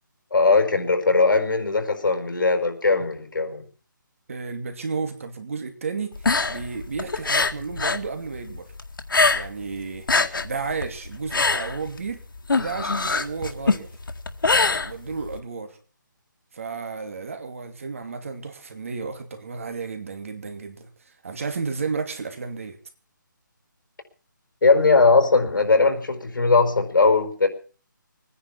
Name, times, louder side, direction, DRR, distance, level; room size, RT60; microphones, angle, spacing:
voice 1, 0.3-3.6 24.6-27.5, left 3 dB, 70° left, 4.7 m, -19 dB
voice 2, 4.3-6.1 6.5-8.7 9.3-12.2 12.5-13.9 14.8-15.8 16.5-22.8, right 4 dB, 40° right, 2.6 m, -32 dB
sound 1, 6.1-8.1 8.3-9.7 9.9-15.4, left 3 dB, 85° left, 1.9 m, -23 dB
22.5 x 10.5 x 5.9 m
hypercardioid pair, 175°, 11 cm